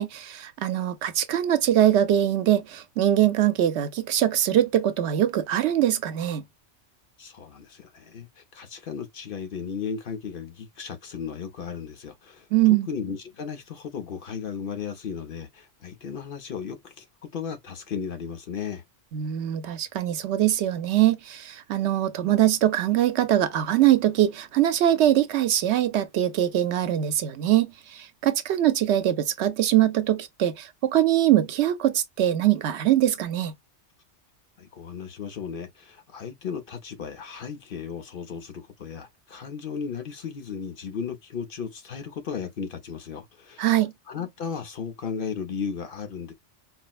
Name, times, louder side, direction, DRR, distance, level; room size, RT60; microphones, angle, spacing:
voice 1, 0.0-6.4 12.5-12.9 19.1-33.5 43.6-43.9, right 12 dB, 75° right, 0.9 m, -22 dB
voice 2, 7.2-12.5 12.9-18.8 34.6-43.7 44.1-46.3, left 6 dB, 55° left, 0.8 m, -35 dB
4.2 x 2.0 x 2.3 m
omnidirectional pair, 1.2 m